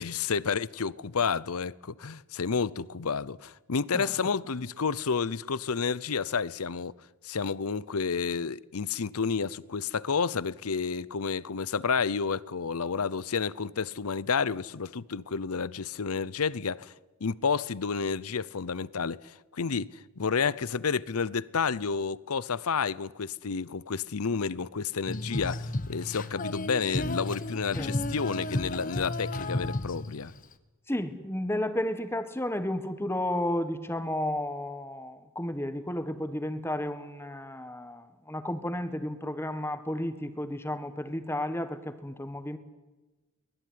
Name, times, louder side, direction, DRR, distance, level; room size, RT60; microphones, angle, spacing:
voice 1, 0.0-6.9 7.2-16.9 17.2-30.3, left 5 dB, 85° left, 0.7 m, -30 dB
Female singing, 25.1-30.5, left 2 dB, 35° left, 1.2 m, -33 dB
voice 2, 30.9-42.6, left 1 dB, 10° left, 1.5 m, -32 dB
23.5 x 20.0 x 9.6 m
head